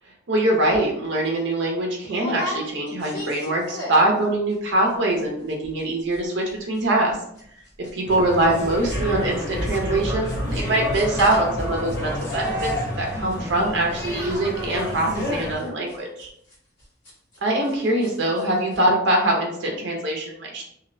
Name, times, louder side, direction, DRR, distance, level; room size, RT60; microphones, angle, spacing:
voice 1, 0.3-7.2 7.8-12.7 13.0-16.3 17.4-20.6, right 1 dB, 75° right, 0 dB, 0.6 m, -23 dB
sound 1, 0.7-0.9 1.3-1.4 2.1-4.2 4.5-4.9 5.2-5.3 5.5-5.8 6.1-17.7 18.0-18.4 18.7-18.8, left 1 dB, 75° left, 1.2 m, -36 dB
sound 2, 8.0-15.5, left 1 dB, 60° left, 0.8 m, -29 dB
2.6 x 2.0 x 2.5 m, 0.72 s
head